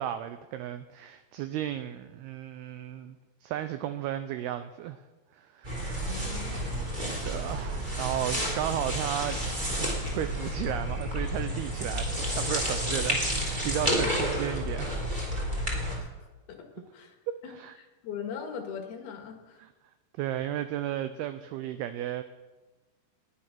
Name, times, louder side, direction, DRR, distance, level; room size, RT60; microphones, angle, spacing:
voice 1, 0.0-3.2 3.4-5.0 5.3-6.1 6.5-9.4 9.8-15.0 17.5-17.7 19.6-19.7 20.2-22.2, right 11 dB, 85° right, 11 dB, 2.2 m, -34 dB
sound 1, 5.6-15.9, equal, 10° right, 2.8 m, -30 dB
voice 2, 6.0-6.6 16.0-16.1 16.5-16.7 16.9-17.1 17.4-17.5 17.8-19.6, left 7 dB, 65° left, 4 dB, 3.6 m, -40 dB
20.0 x 11.5 x 6.0 m, 1.2 s
omnidirectional pair, 5.3 m